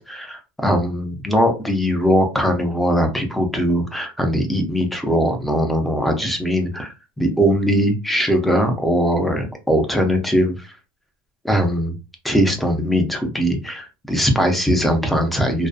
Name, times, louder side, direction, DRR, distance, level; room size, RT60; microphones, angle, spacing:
voice 1, 0.1-10.7 11.4-12.0 12.2-15.7, equal, ahead, 4 dB, 0.4 m, -20 dB
2.4 x 2.3 x 2.3 m, 0.30 s
cardioid pair, 160°, 5 cm